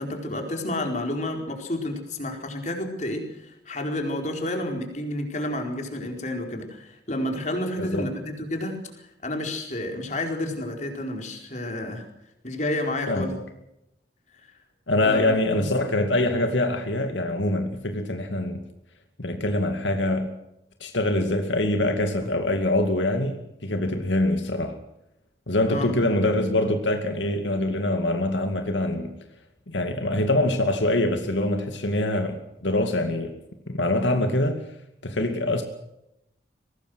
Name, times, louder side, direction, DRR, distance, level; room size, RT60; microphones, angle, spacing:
voice 1, 0.0-8.8 9.2-12.0 12.4-13.4 15.0-15.7 25.7-25.9, left 1 dB, 40° left, 3 dB, 4.5 m, -30 dB
voice 2, 7.8-8.1 13.1-13.4 14.9-18.6 19.2-20.3 20.8-24.8 25.5-29.1 29.7-32.4 32.6-33.3 33.7-34.6 35.0-35.6, left 1 dB, 85° left, 6 dB, 2.4 m, -24 dB
23.5 x 19.0 x 6.3 m, 0.85 s
head